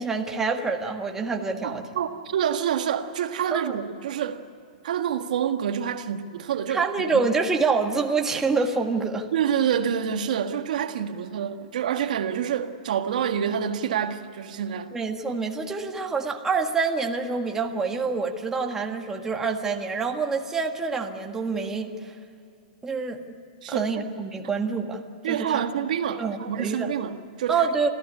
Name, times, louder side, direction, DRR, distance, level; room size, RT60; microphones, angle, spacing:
voice 1, 0.0-1.8 3.5-3.8 6.7-9.3 14.9-21.9 22.8-23.2 23.7-25.6 26.2-26.9 27.5-27.9, right 4 dB, 10° right, 1.7 m, -26 dB
voice 2, 1.6-4.4 4.8-7.2 9.3-14.9 23.6-23.9 25.2-27.7, right 8 dB, 70° right, 1.7 m, -27 dB
26.5 x 15.0 x 9.7 m
hypercardioid pair, 140°, 4 cm